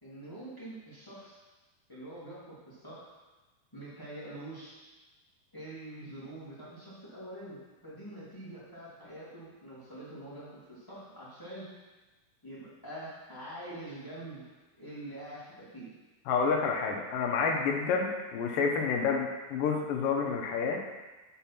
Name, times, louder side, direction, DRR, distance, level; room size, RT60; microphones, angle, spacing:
voice 1, 0.0-1.4 1.9-3.1 3.7-4.8 5.5-11.7 12.4-14.5 14.8-15.9, right 1 dB, 10° left, -9 dB, 1.8 m, -45 dB
voice 2, 16.3-20.8, left 5 dB, 75° left, 1 dB, 2.5 m, -29 dB
8.7 x 4.6 x 5.9 m, 1.2 s
omnidirectional pair, 4.1 m